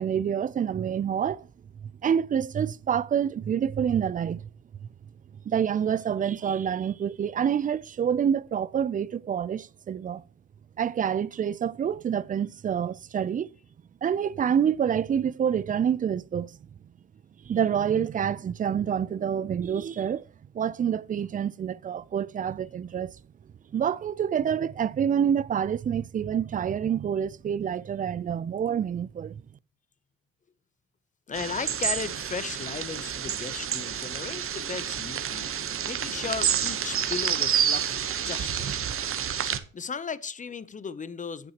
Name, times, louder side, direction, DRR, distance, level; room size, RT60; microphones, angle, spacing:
voice 1, 0.0-1.5 1.8-4.5 5.5-10.2 10.8-13.5 14.0-16.6 17.5-20.3 20.5-23.1 23.7-29.4, right 8 dB, 30° right, 0.3 m, -27 dB
voice 2, 31.3-38.8 39.7-41.5, left 5 dB, 25° left, 0.6 m, -36 dB
sound 1, 31.3-39.6, right 8 dB, 45° right, 0.9 m, -29 dB
8.8 x 7.6 x 2.9 m
cardioid pair, 90°, 30 cm